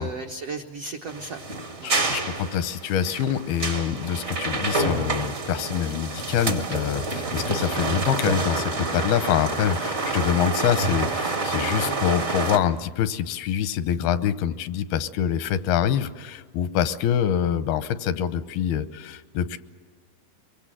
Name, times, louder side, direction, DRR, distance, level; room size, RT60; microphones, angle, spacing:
voice 1, 0.0-2.7 11.8-12.0, right 3 dB, 75° right, 2 dB, 1.4 m, -37 dB
sound 1, 1.1-12.6, right 3 dB, 50° right, 0.7 m, -28 dB
voice 2, 1.8-19.6, left 9 dB, 85° left, 12 dB, 2.8 m, -25 dB
24.0 x 23.5 x 7.7 m, 1.5 s
omnidirectional pair, 4.3 m